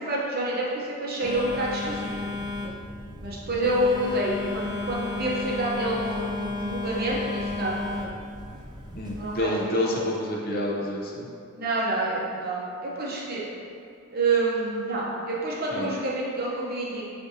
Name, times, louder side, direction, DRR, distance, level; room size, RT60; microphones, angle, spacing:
voice 1, 0.0-2.3 3.2-7.8 9.2-9.7 11.5-13.4 14.1-17.0, right 2 dB, 45° right, -5 dB, 0.7 m, -28 dB
Telephone, 1.2-9.4, left 3 dB, 20° right, 0.3 m, -33 dB
voice 2, 8.9-11.3 15.7-15.9, left 1 dB, 45° left, -3 dB, 0.5 m, -28 dB
6.0 x 2.5 x 2.6 m, 2.5 s
head